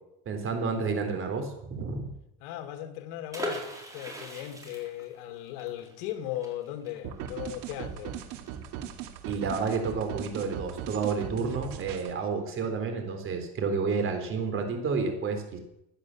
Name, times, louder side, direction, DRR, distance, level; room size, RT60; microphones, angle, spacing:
voice 1, 0.3-2.1 9.2-15.6, right 5 dB, 40° right, 3.8 m, -30 dB
voice 2, 2.4-8.2, left 12 dB, 90° left, 2.2 m, -37 dB
sound 1, 3.3-8.9 9.2-9.3 9.6-9.9, equal, 10° right, 4.0 m, -40 dB
sound 2, 7.0-12.1, right 9 dB, 75° right, 2.2 m, -39 dB
15.5 x 9.8 x 7.6 m
cardioid pair, 140°, 33 cm